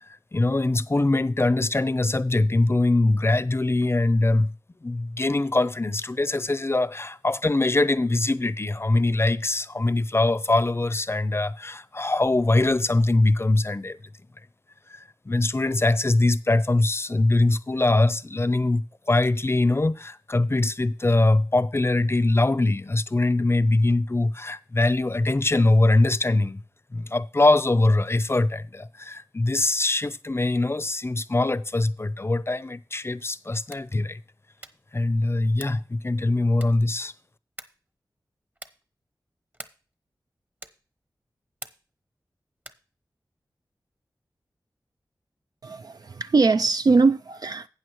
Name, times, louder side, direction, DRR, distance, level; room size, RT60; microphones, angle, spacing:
voice 1, 0.1-4.5 4.8-14.0 14.9-26.6 26.9-34.2 34.9-37.1, left 2 dB, 35° left, 0.6 m, -22 dB
sound 1, 33.6-34.0 34.6-34.9 35.5-35.9 36.6-37.0 37.6-37.9 38.5-38.9 39.5-39.9 40.6-40.9 41.6-42.0 42.6-42.9, right 1 dB, 25° right, 1.0 m, -45 dB
voice 2, 45.6-47.7, right 4 dB, 55° right, 0.4 m, -21 dB
12.5 x 8.6 x 3.1 m
cardioid pair, 45°, 8 cm